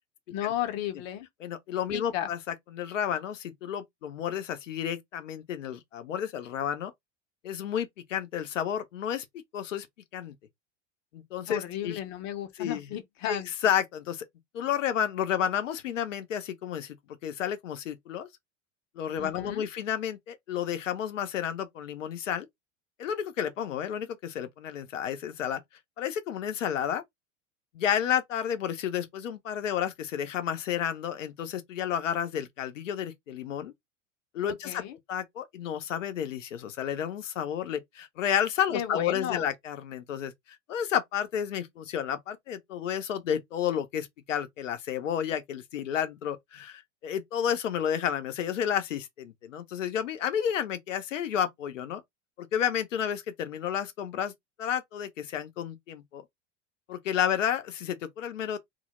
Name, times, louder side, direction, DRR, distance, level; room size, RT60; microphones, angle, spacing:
voice 1, 0.3-1.3 1.9-2.3 11.5-13.5 19.2-19.6 34.5-35.0 38.7-39.5, left 11 dB, 45° left, 0.6 m, -34 dB
voice 2, 1.4-2.4 2.7-6.9 7.4-9.3 9.5-9.9 10.1-10.3 11.1-12.0 12.6-12.9 13.2-14.2 14.5-17.0 17.2-18.3 19.0-22.5 23.0-25.6 26.0-27.0 27.7-33.7 34.3-34.8 35.1-40.3 40.7-52.0 52.4-54.3 54.6-56.2 56.9-58.6, left 9 dB, 85° left, 0.6 m, -31 dB
2.2 x 2.0 x 2.8 m
hypercardioid pair, 85°, 37 cm